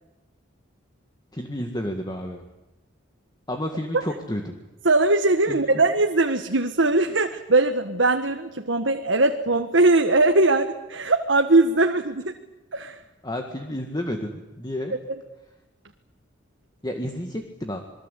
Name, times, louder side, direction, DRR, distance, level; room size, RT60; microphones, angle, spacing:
voice 1, 1.3-2.4 3.5-4.6 5.5-5.7 13.2-15.0 16.8-17.8, left 1 dB, 20° left, 4 dB, 2.0 m, -31 dB
voice 2, 4.8-12.3 12.7-13.0, right 2 dB, 70° right, 5 dB, 1.6 m, -20 dB
28.0 x 22.0 x 8.4 m, 1.0 s
head